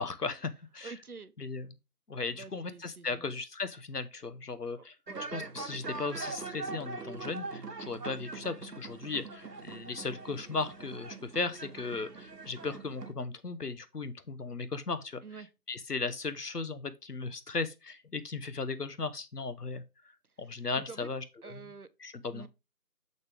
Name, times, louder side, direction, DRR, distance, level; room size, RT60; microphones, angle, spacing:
voice 1, 0.0-0.9 1.4-1.7 2.1-4.9 5.3-15.2 15.7-19.8 20.4-21.7 22.0-22.5, left 4 dB, 75° left, 1.2 m, -36 dB
voice 2, 0.8-1.3 2.3-3.3 4.8-5.2 15.2-15.5 20.4-21.1 21.4-21.9 22.3-22.5, right 4 dB, 65° right, 1.0 m, -47 dB
sound 1, 5.1-13.1, right 3 dB, 85° right, 1.3 m, -42 dB
6.6 x 5.4 x 3.4 m
figure-of-eight pair, 180°, 47 cm